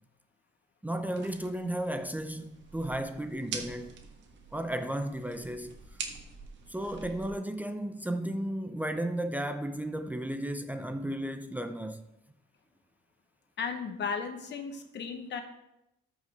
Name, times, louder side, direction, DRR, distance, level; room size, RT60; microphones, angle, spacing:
voice 1, 0.8-4.1 4.5-5.8 6.7-12.0, right 1 dB, 10° right, 0.6 m, -34 dB
sound 1, 1.0-7.3, right 5 dB, 70° right, 1.5 m, -45 dB
voice 2, 13.6-15.4, left 5 dB, 65° left, 1.3 m, -35 dB
13.0 x 5.5 x 3.6 m
cardioid pair, 90°, 20 cm